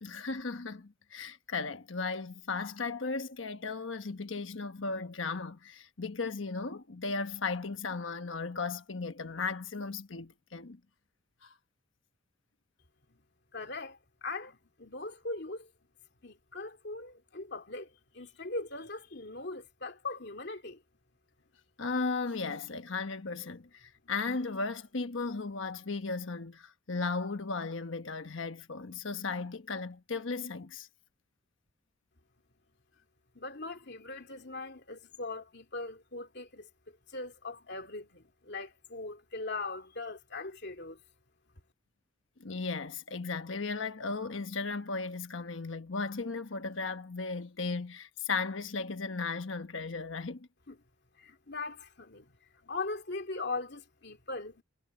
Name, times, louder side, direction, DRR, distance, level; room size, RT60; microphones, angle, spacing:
voice 1, 0.0-10.8 11.4-11.5 21.8-30.9 42.4-50.5, left 4 dB, 80° left, 1.2 m, -36 dB
voice 2, 13.5-15.7 16.2-20.8 33.3-36.7 37.1-41.0 50.7-50.8 51.2-52.3 52.6-54.6, left 3 dB, 60° left, 2.7 m, -40 dB
head